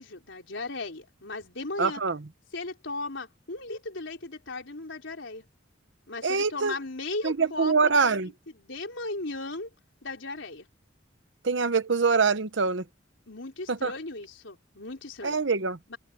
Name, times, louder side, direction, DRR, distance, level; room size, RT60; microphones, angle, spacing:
voice 1, 0.0-2.0 2.5-5.4 6.1-8.2 8.5-9.7 10.0-10.7 13.3-15.4 15.9-16.0, left 2 dB, 75° left, 3.9 m, -37 dB
voice 2, 1.8-2.2 6.2-6.7 7.2-8.3 11.4-12.8 13.7-13.9 15.2-15.8, right 4 dB, 70° right, 1.0 m, -24 dB
head